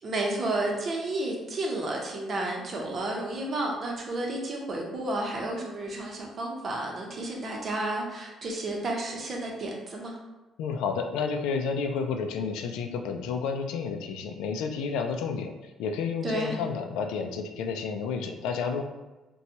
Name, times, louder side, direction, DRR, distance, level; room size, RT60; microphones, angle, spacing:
voice 1, 0.0-10.2 16.2-16.5, right 2 dB, 45° right, 0 dB, 0.8 m, -31 dB
voice 2, 10.6-15.5 15.8-18.8, left 5 dB, 90° left, 5 dB, 0.3 m, -30 dB
4.0 x 2.2 x 2.8 m, 1.1 s
cardioid pair, 85°, 0 cm